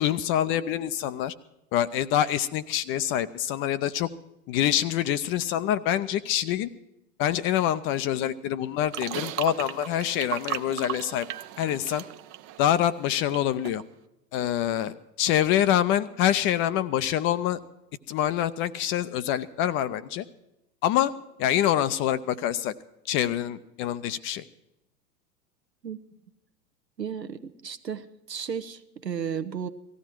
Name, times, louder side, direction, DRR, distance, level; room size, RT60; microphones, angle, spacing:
voice 1, 0.0-1.3 1.7-4.1 4.5-6.7 7.2-11.3 11.6-12.0 12.6-13.8 14.3-17.6 18.1-20.2 20.8-21.1 21.4-22.7 23.1-24.4, left 11 dB, 25° left, 14 dB, 0.5 m, -26 dB
sound 1, 8.9-13.4 13.6-13.8, right 13 dB, 30° right, 0.6 m, -36 dB
voice 2, 27.0-29.7, right 7 dB, 90° right, 11 dB, 1.0 m, -34 dB
18.5 x 15.0 x 4.5 m, 0.88 s
figure-of-eight pair, 95°, 49 cm